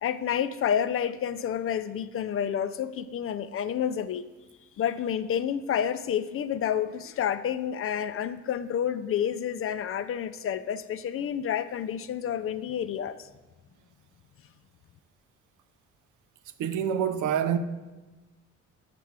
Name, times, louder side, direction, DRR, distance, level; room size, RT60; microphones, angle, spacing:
voice 1, 0.0-4.3 4.8-13.2, left 9 dB, 45° left, 0.4 m, -29 dB
voice 2, 16.6-17.6, right 9 dB, 80° right, 0.6 m, -26 dB
6.8 x 6.0 x 4.7 m
cardioid pair, 90°, 30 cm